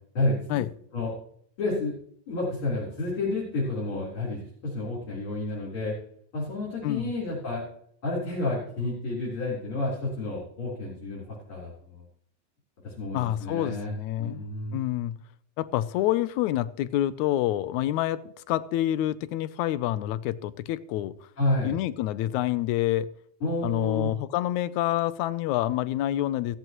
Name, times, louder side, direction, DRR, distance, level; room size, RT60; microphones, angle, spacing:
voice 1, 0.1-0.6 0.9-1.1 1.6-1.9 2.3-5.9 6.3-7.6 8.0-11.2 11.5-12.0 12.8-14.8 21.4-21.8 23.4-24.1, left 2 dB, 45° left, -5 dB, 4.8 m, -30 dB
voice 2, 13.1-14.4 14.7-15.1 15.6-21.1 21.6-23.1 23.6-26.6, left 13 dB, 85° left, 16 dB, 2.0 m, -27 dB
16.5 x 13.5 x 3.1 m, 0.65 s
omnidirectional pair, 3.3 m